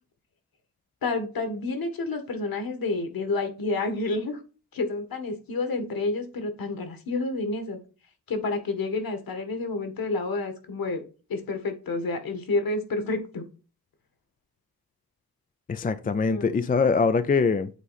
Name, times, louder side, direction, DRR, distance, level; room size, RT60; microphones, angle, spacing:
voice 1, 1.0-4.4 4.7-7.8 8.3-11.0 11.3-13.4 16.3-16.5, left 3 dB, 60° left, 1.8 m, -29 dB
voice 2, 15.7-17.7, left 4 dB, 25° left, 0.3 m, -23 dB
8.3 x 3.8 x 4.1 m
wide cardioid pair, 145°, 40 cm